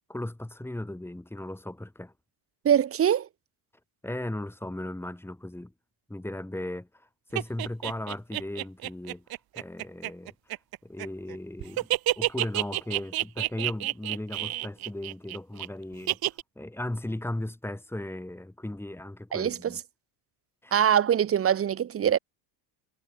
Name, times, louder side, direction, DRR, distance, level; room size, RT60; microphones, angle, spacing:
voice 1, 0.1-2.1 4.0-5.7 6.1-9.3 9.6-10.3 10.8-19.8 20.6-20.8, left 1 dB, 5° left, 4.6 m, -37 dB
voice 2, 2.6-3.3 19.3-19.8 20.7-22.2, right 9 dB, 30° right, 1.0 m, -23 dB
sound 1, 7.4-11.4 11.6-15.7 16.1-16.4, right 15 dB, 50° right, 1.5 m, -29 dB
supercardioid pair, 115°, 46 cm